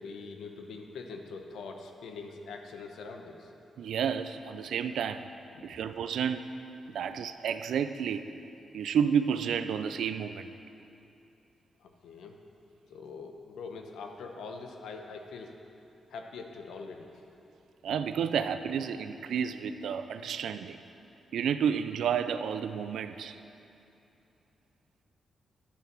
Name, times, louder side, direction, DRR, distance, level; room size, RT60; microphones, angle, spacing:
voice 1, 0.0-3.5 5.5-5.8 7.0-7.2 11.8-12.4 12.9-15.6 16.1-17.1, left 4 dB, 90° left, 3 dB, 0.9 m, -43 dB
voice 2, 3.8-5.3 5.6-6.4 6.9-8.3 8.7-10.5 17.8-20.8 21.3-23.4, right 7 dB, 85° right, 10 dB, 0.4 m, -31 dB
10.5 x 8.1 x 6.0 m, 2.9 s
cardioid pair, 75°, 0 cm